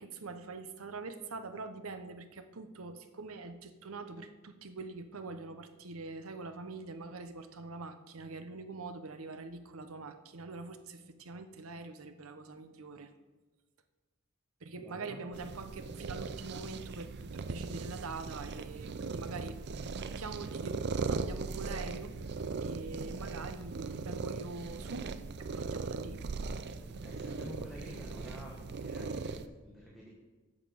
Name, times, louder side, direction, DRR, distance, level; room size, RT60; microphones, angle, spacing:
voice 1, 0.0-13.1 14.6-22.2 22.6-25.1 25.5-26.2, right 3 dB, 70° right, 8 dB, 0.9 m, -44 dB
voice 2, 14.8-15.2 23.2-23.4 26.9-30.1, equal, ahead, -5 dB, 1.4 m, -49 dB
sound 1, 15.3-29.5, right 4 dB, 50° right, 0.5 m, -39 dB
8.1 x 7.4 x 6.8 m, 1.2 s
head